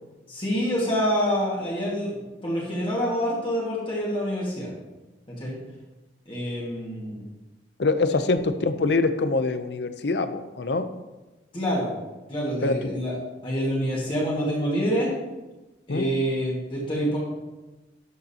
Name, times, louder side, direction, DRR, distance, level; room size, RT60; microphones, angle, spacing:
voice 1, 0.3-4.7 5.3-5.5 6.3-7.2 11.5-11.9 12.3-13.1 13.4-15.1 15.9-17.2, equal, 30° left, -5 dB, 1.8 m, -26 dB
voice 2, 7.8-10.9 12.6-12.8 15.9-16.1, left 3 dB, 65° left, 10 dB, 0.6 m, -24 dB
12.0 x 6.6 x 2.9 m, 1.1 s
head